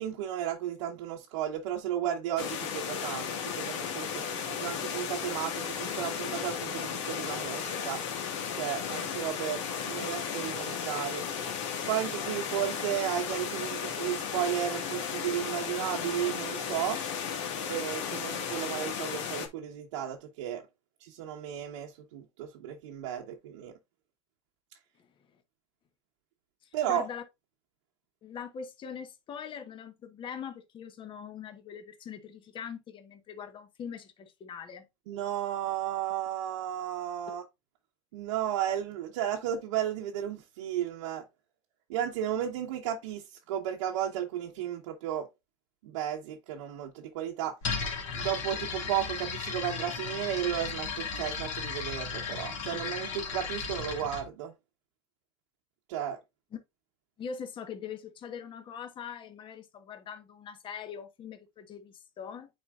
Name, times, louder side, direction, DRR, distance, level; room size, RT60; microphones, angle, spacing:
voice 1, 0.0-4.2 4.6-8.0 8.5-11.2 11.9-17.0 17.7-20.6 21.0-23.7 26.7-27.1 35.1-37.4 38.1-41.2 41.9-45.3 45.8-47.5 48.1-54.5 55.9-56.2, right 10 dB, 75° right, 1.1 m, -34 dB
sound 1, 2.4-19.5, left 7 dB, 65° left, 1.8 m, -35 dB
voice 2, 26.9-27.2 28.2-34.9 56.5-56.6 57.2-62.5, left 7 dB, 30° left, 1.2 m, -42 dB
sound 2, 47.6-54.2, left 5 dB, 85° left, 2.7 m, -35 dB
9.2 x 4.3 x 2.5 m
supercardioid pair, 115°, 16 cm